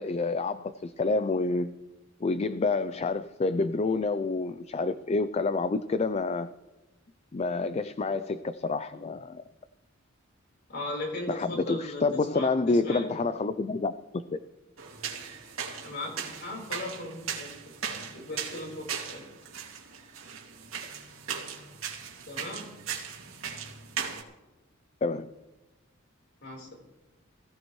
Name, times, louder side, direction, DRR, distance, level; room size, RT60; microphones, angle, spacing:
voice 1, 0.0-1.7 2.2-6.5 7.3-9.4 11.3-14.4 25.0-25.3, left 3 dB, 30° left, 12 dB, 0.4 m, -28 dB
voice 2, 10.7-13.2 15.8-17.5 18.1-19.3 22.3-22.6 26.4-26.7, left 2 dB, 60° left, -1 dB, 4.2 m, -38 dB
sound 1, 14.8-24.2, right 7 dB, 85° right, 2.5 m, -38 dB
19.5 x 16.0 x 3.2 m, 1.1 s
head